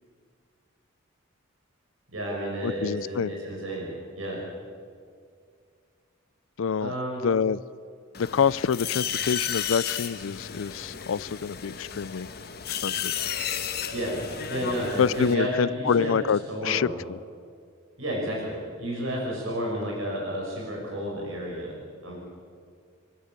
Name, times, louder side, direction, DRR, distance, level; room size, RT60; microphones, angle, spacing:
voice 1, 2.1-3.9 4.1-4.4 6.8-7.2 13.9-14.2 14.5-16.1 16.5-17.0 18.0-21.8 22.0-22.2, equal, 80° right, -2 dB, 6.2 m, -31 dB
voice 2, 2.6-3.3 6.6-6.9 7.2-7.6 8.2-12.3 12.8-13.1 15.0-17.2, left 6 dB, 75° left, 22 dB, 0.4 m, -26 dB
sound 1, 8.1-15.3, left 8 dB, 50° left, 1.4 m, -33 dB
29.5 x 12.0 x 8.1 m, 2.1 s
head